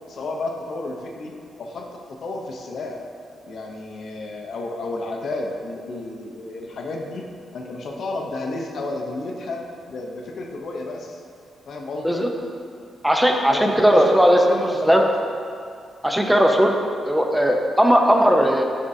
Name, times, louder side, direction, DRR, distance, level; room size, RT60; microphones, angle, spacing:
voice 1, 0.1-3.0 3.4-7.2 7.5-9.6 9.9-11.2 11.7-12.3 13.5-15.1 16.2-16.4, left 2 dB, 65° left, 1 dB, 0.6 m, -32 dB
voice 2, 13.0-14.4 14.8-15.0 16.0-16.7 17.1-18.6, equal, 5° right, 2 dB, 0.6 m, -17 dB
9.6 x 3.7 x 2.6 m, 2.3 s
cardioid pair, 85°, 0 cm